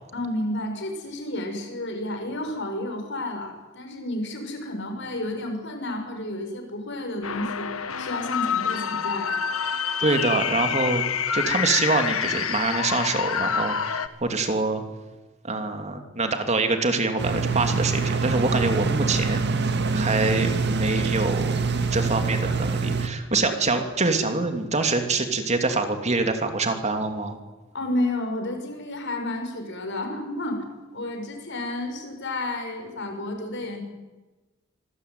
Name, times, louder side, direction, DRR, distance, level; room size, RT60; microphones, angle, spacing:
voice 1, 0.1-9.4 27.7-30.6 30.9-33.8, left 1 dB, 60° left, 4 dB, 6.6 m, -31 dB
sound 1, 7.2-14.1, left 7 dB, 90° left, 1.5 m, -27 dB
voice 2, 10.0-11.0 11.3-14.8 15.4-19.4 19.9-27.4, right 3 dB, 35° right, 6 dB, 2.7 m, -25 dB
sound 2, 17.2-23.1, right 4 dB, 55° right, 2.1 m, -25 dB
26.0 x 20.5 x 9.5 m, 1.2 s
head